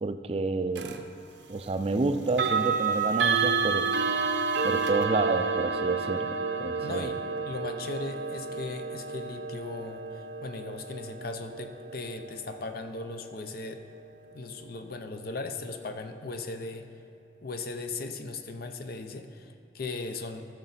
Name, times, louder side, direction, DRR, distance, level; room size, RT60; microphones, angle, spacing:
voice 1, 0.0-1.0 1.5-3.9 4.6-6.3 6.6-7.1, right 3 dB, 35° right, 9 dB, 0.4 m, -29 dB
sound 1, 0.7-1.0 2.3-13.1, right 5 dB, 85° right, 0.7 m, -30 dB
voice 2, 6.7-13.8 14.3-16.9 17.4-20.5, left 3 dB, 60° left, 7 dB, 0.7 m, -38 dB
14.5 x 6.5 x 4.1 m, 2.5 s
head